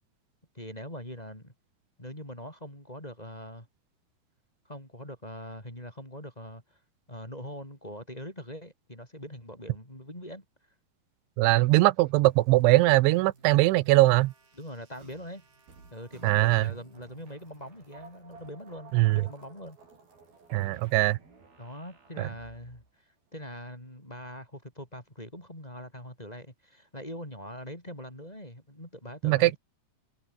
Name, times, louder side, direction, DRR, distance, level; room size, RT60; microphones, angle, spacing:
voice 1, 0.5-1.5 2.0-3.7 4.7-6.8 7.1-10.4 14.6-15.4 15.9-19.8 20.5-20.8 21.6-29.6, equal, 10° left, 5.2 m, -43 dB
voice 2, 11.4-14.3 16.2-16.7 18.9-19.2 20.5-21.2 22.2-22.3 29.2-29.5, right 19 dB, 90° right, 3.1 m, -21 dB
sound 1, 11.6-22.9, right 4 dB, 50° right, 9.3 m, -55 dB
omnidirectional pair, 5.3 m